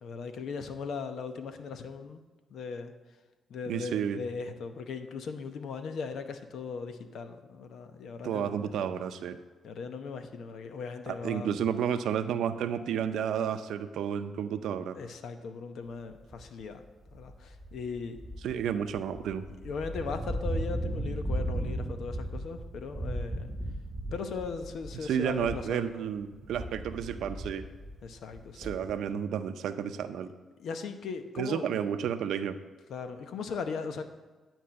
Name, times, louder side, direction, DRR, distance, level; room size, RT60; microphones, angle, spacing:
voice 1, 0.0-2.2 2.5-2.9 3.5-8.7 9.6-11.5 14.9-16.8 17.1-18.2 19.6-23.5 24.1-26.0 28.0-28.7 30.6-31.7 32.9-34.0, left 5 dB, 70° left, 8 dB, 0.9 m, -38 dB
voice 2, 3.7-4.2 8.2-9.4 11.1-15.0 18.4-19.4 25.0-27.7 28.6-30.3 31.4-32.6, right 8 dB, 80° right, 10 dB, 0.6 m, -31 dB
sound 1, 16.3-16.6 17.1-25.9 26.2-29.1, right 1 dB, 15° right, 1.2 m, -36 dB
10.5 x 4.5 x 7.7 m, 1.3 s
cardioid pair, 75°, 0 cm